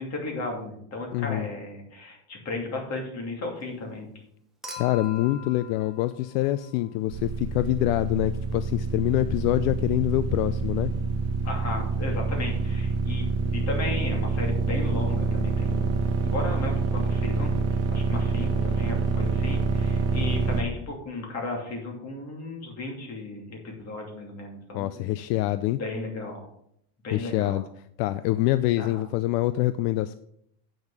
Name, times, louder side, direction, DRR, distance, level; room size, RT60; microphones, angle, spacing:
voice 1, 0.0-4.1 11.4-13.2 13.5-16.0 16.2-17.5 17.9-25.0 25.8-26.5 27.0-27.6 28.8-29.0, left 2 dB, 30° left, 1 dB, 2.7 m, -35 dB
voice 2, 1.1-1.5 4.8-10.9 24.7-25.8 27.1-27.6 28.0-30.2, left 16 dB, 75° left, 13 dB, 0.6 m, -25 dB
Human group actions / Chink clink / Liquid, 4.6-7.0 8.5-8.6, left 5 dB, ahead, 1.1 m, -42 dB
sound 1, 7.1-20.6, right 4 dB, 30° right, 1.2 m, -27 dB
8.8 x 6.4 x 4.9 m, 0.71 s
supercardioid pair, 155°, 49 cm